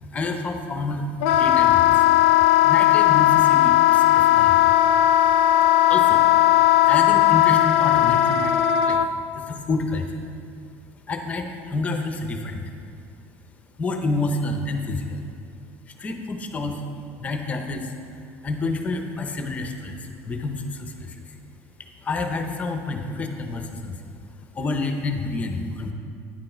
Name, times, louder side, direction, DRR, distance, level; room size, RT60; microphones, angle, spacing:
voice 1, 0.0-2.0 2.6-4.7 5.9-6.3 6.8-8.5 8.8-9.1 9.3-10.2 11.1-12.7 13.8-15.2 15.9-16.8 17.2-17.9 18.4-21.4 22.0-24.0 24.5-25.9, left 3 dB, 20° left, 5 dB, 0.7 m, -29 dB
Wind instrument woodwind instrument, 1.2-9.1, left 13 dB, 90° left, 0.4 m, -17 dB
9.9 x 6.8 x 4.4 m, 2.4 s
cardioid pair, 150°, 7 cm